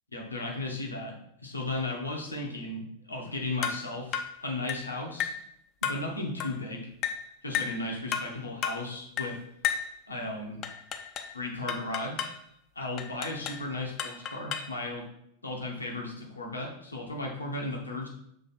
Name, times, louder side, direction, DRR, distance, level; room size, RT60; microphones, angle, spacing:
voice 1, 0.1-1.2 1.4-5.4 5.8-6.9 7.4-9.4 10.1-10.6 11.3-12.3 12.7-15.0 15.4-18.1, left 2 dB, 80° left, 0 dB, 1.2 m, -35 dB
sound 1, 3.6-3.9 4.1-4.4 4.7-4.9 5.2-5.4 5.8-6.1 6.4-6.6 7.0-7.2 7.5-7.8 8.1-8.3 8.6-8.8 9.2-9.4 9.6-9.9 10.6-11.3 11.7-12.4 13.0-13.6 14.0-14.8, left 8 dB, 35° left, 0.6 m, -33 dB
6.5 x 3.2 x 4.5 m, 0.75 s
figure-of-eight pair, 90°, 0 cm